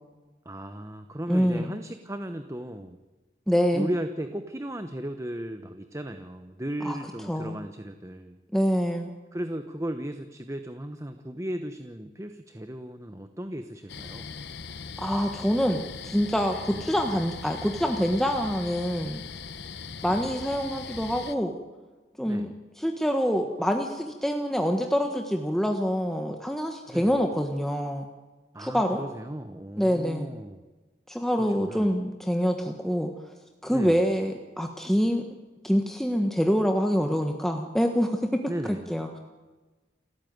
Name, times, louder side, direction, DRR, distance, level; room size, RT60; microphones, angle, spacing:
voice 1, 0.4-3.0 3.7-8.4 9.3-14.3 16.7-16.8 20.1-20.2 22.2-22.5 26.9-27.2 28.5-30.6 31.4-31.9 33.7-34.1 38.5-38.9, right 1 dB, 15° right, 8 dB, 1.0 m, -36 dB
voice 2, 1.3-1.7 3.5-3.9 6.8-7.0 7.3-7.6 8.5-9.1 15.0-19.2 20.0-21.6 22.2-28.0 28.6-29.0 29.8-30.3 31.1-33.1 33.6-35.2 35.6-38.4 38.9-39.1, equal, ahead, 4 dB, 1.4 m, -26 dB
sound 1, 13.9-21.3, left 5 dB, 75° left, 1.1 m, -40 dB
29.0 x 14.0 x 9.4 m, 1.3 s
head